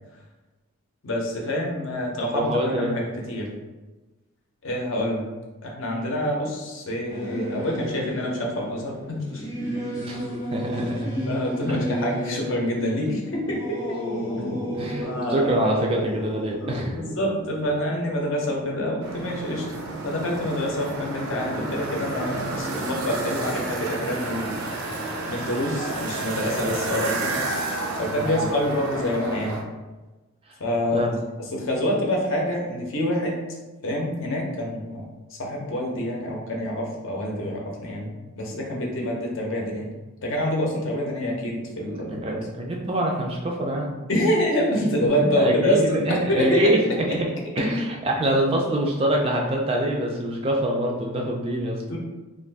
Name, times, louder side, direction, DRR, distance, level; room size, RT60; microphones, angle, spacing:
voice 1, 1.0-3.5 4.6-5.3 5.6-9.5 11.3-14.0 14.4-14.6 15.0-15.6 16.6-19.6 20.0-24.6 25.3-27.4 27.9-29.6 30.6-31.1 31.4-33.4 33.8-35.0 35.4-38.1 38.4-39.9 40.2-42.4 44.1-47.0 51.9-52.0, left 1 dB, 60° left, -1 dB, 0.6 m, -26 dB
voice 2, 2.3-3.0 10.0-10.2 10.5-11.1 11.7-11.8 14.7-17.0 26.6-26.8 28.2-28.5 30.9-31.2 42.1-44.0 45.1-46.8 47.1-47.3 47.6-52.0, right 1 dB, 25° right, 0 dB, 0.3 m, -25 dB
Singing / Musical instrument, 7.1-18.9, equal, 15° left, 0.6 m, -33 dB
sound 1, 19.0-29.6, right 2 dB, 80° right, 0.5 m, -31 dB
2.4 x 2.4 x 3.3 m, 1.2 s
head